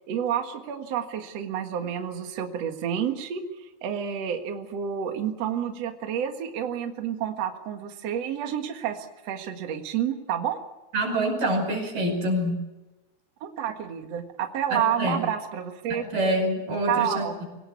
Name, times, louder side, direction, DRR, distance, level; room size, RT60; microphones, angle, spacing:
voice 1, 0.0-3.4 3.8-10.6 13.4-16.0 16.9-17.3, right 9 dB, 75° right, 5 dB, 1.5 m, -29 dB
voice 2, 10.9-12.5 14.7-15.2 15.9-17.4, right 1 dB, 45° right, 3 dB, 6.8 m, -26 dB
24.0 x 18.0 x 8.4 m, 1.1 s
omnidirectional pair, 5.8 m